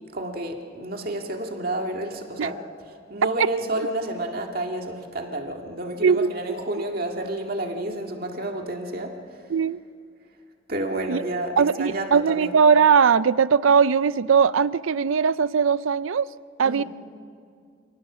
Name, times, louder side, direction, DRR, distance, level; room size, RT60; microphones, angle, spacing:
voice 1, 0.1-2.6 3.1-9.5 10.7-12.6 16.6-16.8, right 1 dB, 50° right, 2.1 m, -30 dB
voice 2, 11.6-16.3 16.6-16.8, right 6 dB, 90° right, 0.5 m, -19 dB
28.5 x 18.5 x 6.3 m
head